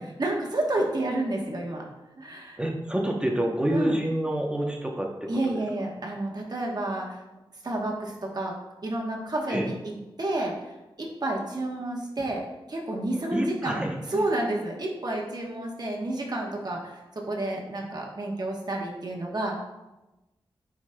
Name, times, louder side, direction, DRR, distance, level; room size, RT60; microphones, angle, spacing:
voice 1, 0.2-1.8 2.2-2.6 3.7-4.0 5.3-7.2 7.6-8.5 8.8-9.8 10.2-12.4 12.7-19.6, right 1 dB, 45° right, -1 dB, 1.1 m, -30 dB
voice 2, 2.6-5.5 9.5-9.6 13.3-14.2, right 1 dB, 10° right, 0 dB, 0.8 m, -28 dB
9.0 x 4.8 x 2.2 m, 1.0 s
wide cardioid pair, 80°, 9 cm